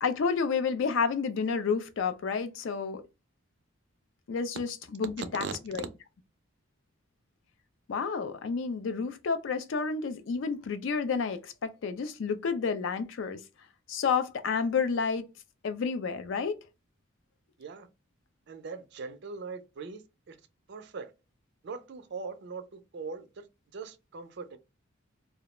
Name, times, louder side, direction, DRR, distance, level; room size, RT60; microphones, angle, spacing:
voice 1, 0.0-3.0 4.3-5.8 7.9-13.4 13.9-15.2 15.6-16.6, left 5 dB, 60° left, 0.4 m, -30 dB
voice 2, 18.5-20.4 20.7-21.1 21.6-23.4 23.7-24.6, right 4 dB, 55° right, 0.4 m, -41 dB
2.3 x 2.0 x 2.9 m
head